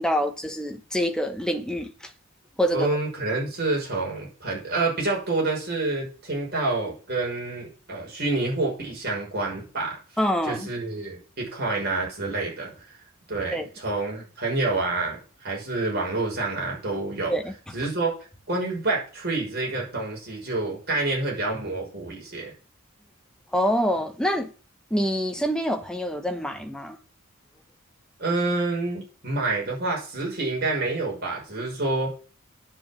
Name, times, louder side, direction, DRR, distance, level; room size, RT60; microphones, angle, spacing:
voice 1, 0.0-2.1 2.6-2.9 10.2-10.7 13.5-13.7 17.3-17.5 23.5-24.5 24.9-27.0, equal, 5° left, 1.2 m, -26 dB
voice 2, 2.7-10.0 10.4-13.0 13.3-17.4 17.7-18.1 18.5-22.5 28.2-32.1, right 2 dB, 50° right, 6.0 m, -28 dB
9.6 x 8.5 x 7.6 m
head